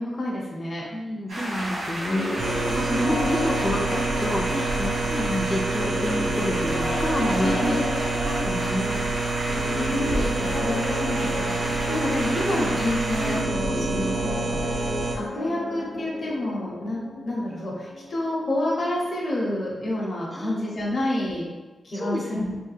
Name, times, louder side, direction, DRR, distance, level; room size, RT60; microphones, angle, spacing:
voice 1, 0.0-0.8 4.5-4.7 7.4-7.9 9.4-14.9 15.2-21.5 21.8-22.6, left 1 dB, 40° left, -5 dB, 0.7 m, -29 dB
voice 2, 0.9-7.8 8.1-9.1 14.0-14.1 20.3-20.6 21.9-22.4, equal, 5° left, -1 dB, 0.3 m, -29 dB
sound 1, 1.3-13.4, right 1 dB, 90° right, 1.3 m, -32 dB
sound 2, 2.0-19.6, left 2 dB, 85° left, 0.5 m, -33 dB
sound 3, 2.4-15.2, right 3 dB, 70° right, 0.4 m, -28 dB
3.3 x 2.2 x 3.2 m, 1.2 s
wide cardioid pair, 175°, 0 cm